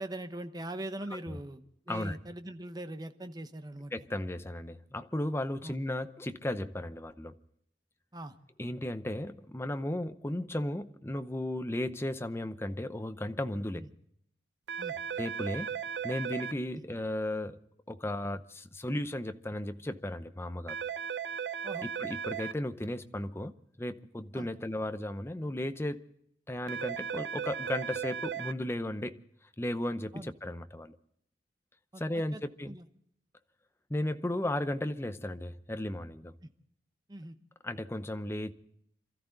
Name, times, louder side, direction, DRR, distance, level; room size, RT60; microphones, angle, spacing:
voice 1, 0.0-3.9 5.6-5.8 8.1-8.4 13.8-13.9 14.8-14.9 16.7-16.8 21.6-21.9 24.3-24.5 30.1-30.3 31.9-32.0 32.3-32.4 32.7-32.8 36.4-36.5 37.1-37.3, right 1 dB, 20° right, 0.9 m, -41 dB
voice 2, 3.9-7.4 8.6-13.9 15.2-15.7 16.0-17.6 17.9-20.8 21.8-23.5 23.8-26.0 26.5-29.2 29.6-31.0 32.0-32.8 33.9-36.3 37.6-38.5, left 1 dB, 15° left, 0.7 m, -35 dB
sound 1, 14.7-16.5 20.7-22.5 26.7-28.5, right 7 dB, 60° right, 0.6 m, -36 dB
27.0 x 14.0 x 3.9 m
head